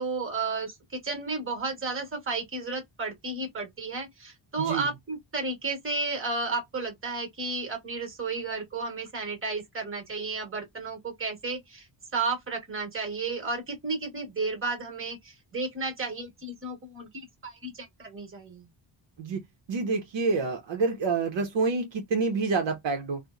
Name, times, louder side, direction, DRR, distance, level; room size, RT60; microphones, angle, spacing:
voice 1, 0.0-11.9 12.1-18.6, right 3 dB, 25° right, 1.1 m, -33 dB
voice 2, 4.6-4.9 19.2-19.4 19.7-23.2, right 4 dB, 65° right, 0.7 m, -27 dB
2.9 x 2.0 x 2.3 m
wide cardioid pair, 135°, 48 cm